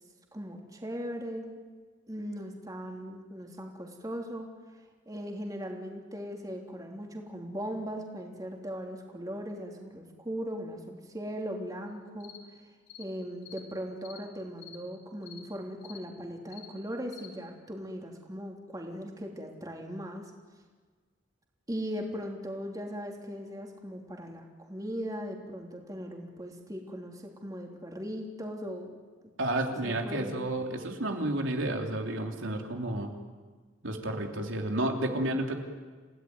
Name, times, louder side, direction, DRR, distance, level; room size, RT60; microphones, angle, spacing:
voice 1, 0.3-1.6 2.1-4.5 5.0-12.3 13.0-20.3 21.7-29.0 29.8-30.5, equal, 20° right, 1 dB, 3.2 m, -39 dB
sound 1, 12.2-12.4 12.9-13.1 13.4-13.6 14.0-14.2 14.6-14.8 15.2-15.4 15.8-16.0 16.5-16.7 17.1-17.3, left 9 dB, 85° left, 6.1 m, -49 dB
voice 2, 29.4-33.1 33.8-35.5, right 1 dB, 85° right, 2 dB, 3.2 m, -31 dB
30.0 x 17.5 x 9.6 m, 1.4 s
head